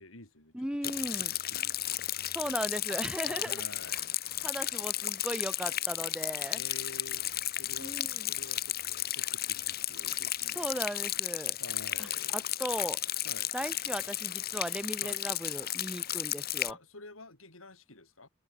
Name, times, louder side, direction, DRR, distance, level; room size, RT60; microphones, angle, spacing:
voice 1, 0.0-2.0 3.2-4.1 6.5-7.3 7.6-8.0 8.3-10.7 11.6-12.6 13.2-13.5 15.0-15.3 16.7-18.3, left 2 dB, 85° left, 7.2 m, -49 dB
voice 2, 0.5-1.3 2.3-3.6 3.9-4.0 4.4-6.6 7.8-8.3 10.5-11.6 12.0-13.0 13.5-16.8, equal, 5° right, 1.4 m, -37 dB
Rain, 0.8-16.7, left 13 dB, 50° left, 1.9 m, -34 dB
head